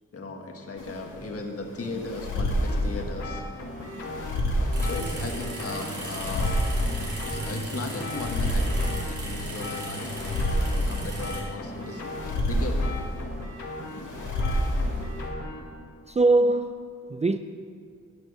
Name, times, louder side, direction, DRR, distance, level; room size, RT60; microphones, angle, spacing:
voice 1, 0.1-3.4 4.8-13.0, left 2 dB, 50° left, 1.6 m, -37 dB
sound 1, 0.8-15.3, left 1 dB, 85° left, 2.5 m, -29 dB
sound 2, 2.6-15.8, left 2 dB, 65° left, 2.3 m, -39 dB
sound 3, 4.7-11.4, right 2 dB, 70° right, 3.8 m, -36 dB
voice 2, 16.1-17.4, right 2 dB, 25° right, 0.3 m, -22 dB
13.0 x 6.3 x 9.7 m
wide cardioid pair, 165°, 30 cm